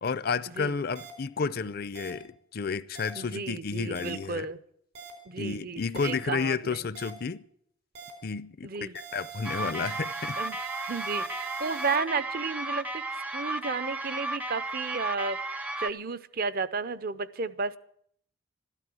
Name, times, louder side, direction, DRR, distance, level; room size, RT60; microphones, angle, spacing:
voice 1, 0.0-4.5 5.4-7.4 8.2-10.4, left 5 dB, 50° left, 0.5 m, -31 dB
sound 1, 1.0-1.1 2.0-2.1 3.0-3.1 4.0-4.1 5.0-5.1 6.0-6.1 7.0-7.1 8.0-8.1 9.0-12.0, right 8 dB, 75° right, 3.9 m, -43 dB
voice 2, 3.2-4.6 5.3-6.8 8.6-9.0 10.4-15.4 15.8-17.8, right 4 dB, 50° right, 0.6 m, -33 dB
sound 2, 9.4-15.9, right 2 dB, 5° right, 0.5 m, -34 dB
13.0 x 12.5 x 7.7 m
head